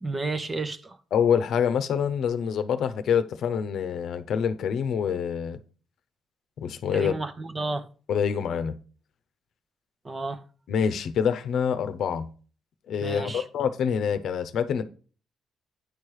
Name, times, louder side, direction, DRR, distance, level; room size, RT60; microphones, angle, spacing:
voice 1, 0.0-1.0 6.9-7.9 10.0-10.4 13.0-13.4, right 3 dB, 25° right, 0.9 m, -31 dB
voice 2, 1.1-5.6 6.6-7.1 8.1-8.7 10.7-12.2 12.9-14.8, left 7 dB, 70° left, 0.7 m, -26 dB
9.4 x 4.6 x 4.8 m
cardioid pair, 90°, 0 cm